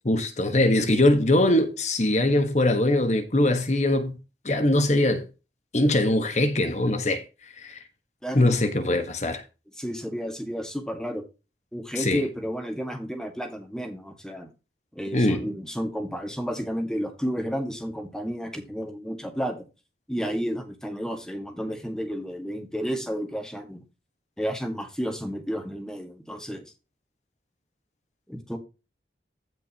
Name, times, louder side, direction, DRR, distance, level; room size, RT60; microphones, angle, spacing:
voice 1, 0.0-4.2 4.4-5.2 5.7-7.2 7.6-7.8 8.3-9.4 12.0-12.2 15.1-15.4, left 1 dB, 40° left, 1.4 m, -22 dB
voice 2, 9.8-11.2 11.7-14.5 14.9-19.7 20.1-23.8 24.4-26.6 28.3-28.6, equal, 5° left, 1.7 m, -32 dB
15.5 x 5.2 x 2.9 m
head